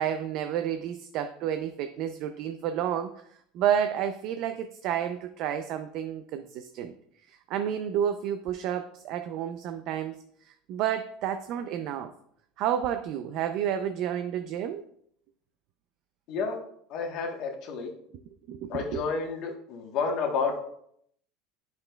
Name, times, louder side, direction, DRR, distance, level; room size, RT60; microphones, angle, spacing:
voice 1, 0.0-3.1 3.5-6.9 7.3-10.1 10.4-12.1 12.6-14.8 18.5-19.0, right 9 dB, 50° right, 8 dB, 0.4 m, -30 dB
voice 2, 16.9-17.9 18.7-20.6, left 5 dB, 50° left, 3 dB, 1.1 m, -30 dB
8.7 x 5.9 x 2.2 m, 0.69 s
cardioid pair, 155°, 0 cm